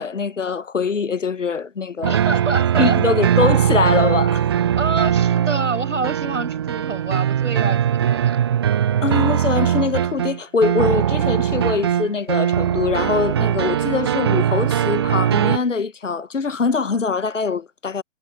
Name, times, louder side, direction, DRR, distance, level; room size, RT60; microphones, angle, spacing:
voice 1, 0.0-2.2 2.8-4.4 9.0-18.0, left 5 dB, 65° left, 1.2 m, -23 dB
sound 1, 2.0-15.6, right 10 dB, 20° right, 0.8 m, -20 dB
voice 2, 2.0-3.0 4.7-8.4, right 3 dB, 70° right, 6.0 m, -27 dB
figure-of-eight pair, 140°, 39 cm